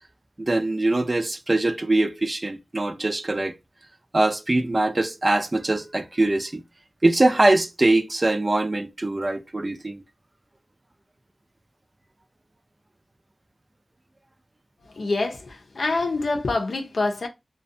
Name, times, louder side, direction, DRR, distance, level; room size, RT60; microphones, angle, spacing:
voice 1, 0.4-3.5 4.1-6.6 7.0-10.0, right 2 dB, 35° right, 0.4 m, -22 dB
voice 2, 15.0-17.3, left 3 dB, 85° left, 0.5 m, -26 dB
2.5 x 2.1 x 2.5 m
wide cardioid pair, 80°, 0 cm